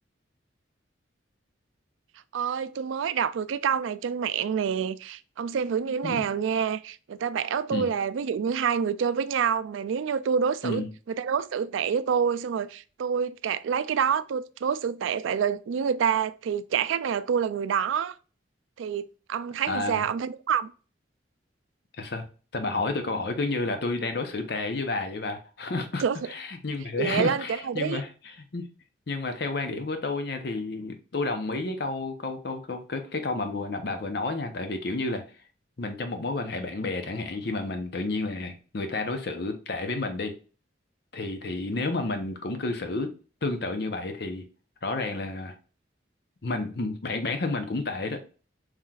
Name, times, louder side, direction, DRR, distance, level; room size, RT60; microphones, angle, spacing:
voice 1, 2.3-18.2 18.8-20.7 26.0-26.2 27.0-28.0, right 7 dB, 90° right, 0.3 m, -27 dB
voice 2, 19.7-20.1 21.9-22.3 22.5-28.1 28.5-28.7 29.1-35.2 35.8-40.3 41.1-43.1 43.4-44.5 44.8-45.5 46.4-48.2, left 3 dB, 55° left, 0.7 m, -31 dB
5.6 x 3.2 x 2.4 m
head